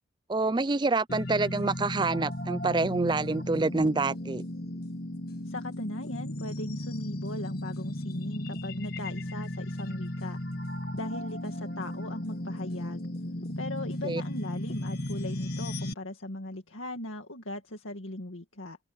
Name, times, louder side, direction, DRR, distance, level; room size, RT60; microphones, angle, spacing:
voice 1, 0.3-4.4 14.0-14.2, right 3 dB, 20° right, 0.4 m, -27 dB
sound 1, 1.1-15.9, left 1 dB, 50° left, 1.8 m, -35 dB
voice 2, 5.4-10.4 10.9-13.1 13.6-18.8, left 1 dB, 85° left, 2.1 m, -38 dB
head